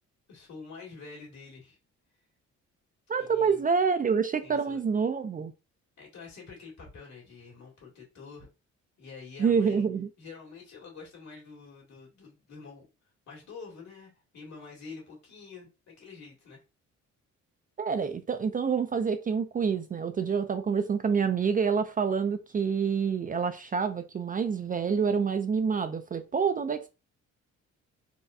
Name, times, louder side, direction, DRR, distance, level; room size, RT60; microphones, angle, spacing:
voice 1, 0.3-1.8 3.2-3.7 4.4-4.8 6.0-8.5 9.0-9.9 10.2-12.9 13.3-16.6, left 4 dB, 65° left, 2.0 m, -47 dB
voice 2, 3.1-5.5 9.4-10.1 17.8-26.9, right 6 dB, 30° right, 0.4 m, -27 dB
4.0 x 2.2 x 2.6 m
cardioid pair, 90°, 30 cm